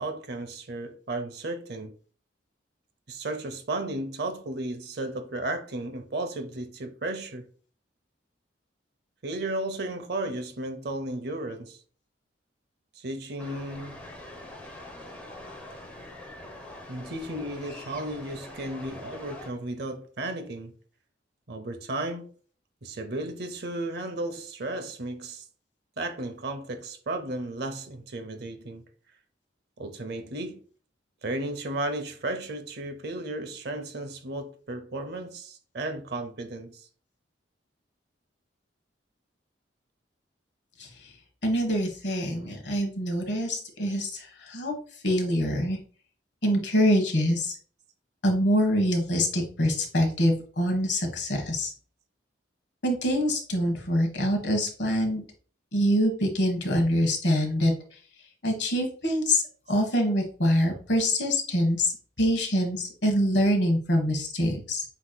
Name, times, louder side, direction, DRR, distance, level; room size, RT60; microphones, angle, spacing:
voice 1, 0.0-1.9 3.1-7.4 9.2-11.8 13.0-14.0 16.9-20.7 21.5-22.3 22.8-25.4 26.0-28.8 29.8-30.6 31.2-36.9, right 2 dB, 55° right, 0.7 m, -34 dB
sound 1, 13.4-19.5, left 1 dB, 5° left, 0.9 m, -43 dB
voice 2, 41.4-44.8 45.0-45.8 46.4-47.5 48.2-51.7 52.8-55.2 55.7-57.7 58.4-59.4 59.7-61.9 62.2-64.8, equal, 65° left, 1.3 m, -25 dB
8.0 x 2.9 x 2.2 m
head